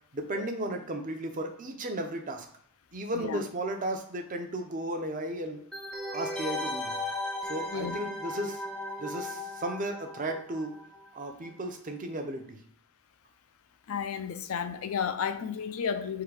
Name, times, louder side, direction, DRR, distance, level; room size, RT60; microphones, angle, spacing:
voice 1, 0.1-2.5 2.9-5.6 6.1-7.0 7.4-8.7 9.0-10.8 11.1-12.6, right 1 dB, 35° right, 0.6 m, -34 dB
sound 1, 5.7-11.2 11.4-11.5, left 1 dB, 5° left, 0.5 m, -36 dB
voice 2, 13.9-16.2, left 7 dB, 70° left, 0.4 m, -32 dB
3.7 x 2.7 x 4.7 m
head